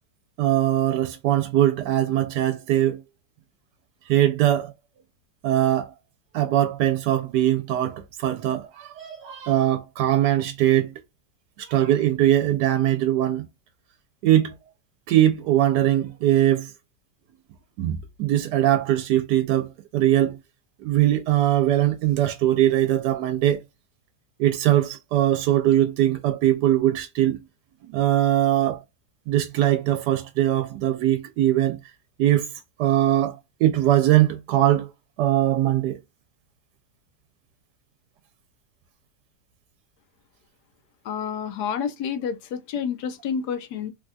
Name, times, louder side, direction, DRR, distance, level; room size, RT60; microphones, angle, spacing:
voice 1, 0.4-3.0 4.1-4.7 5.4-5.9 6.3-10.9 11.6-13.5 14.2-14.5 15.1-16.7 17.8-20.4 20.8-23.6 24.4-27.4 27.9-28.8 29.3-31.8 32.2-32.5 32.8-34.9 35.2-36.0, right 12 dB, 80° right, 1.1 m, -21 dB
voice 2, 41.0-43.9, left 7 dB, 80° left, 1.1 m, -29 dB
3.3 x 2.3 x 2.5 m
omnidirectional pair, 1.7 m